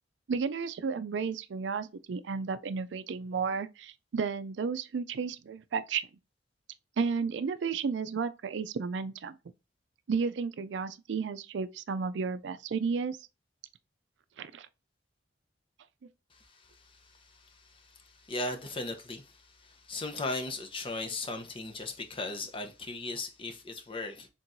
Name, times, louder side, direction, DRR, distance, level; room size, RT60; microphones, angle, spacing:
voice 1, 0.3-6.1 7.0-9.4 10.1-13.2 14.4-14.7, right 5 dB, 70° right, 0.4 m, -33 dB
voice 2, 16.3-24.3, left 2 dB, 30° left, 0.8 m, -38 dB
4.5 x 3.8 x 2.6 m
head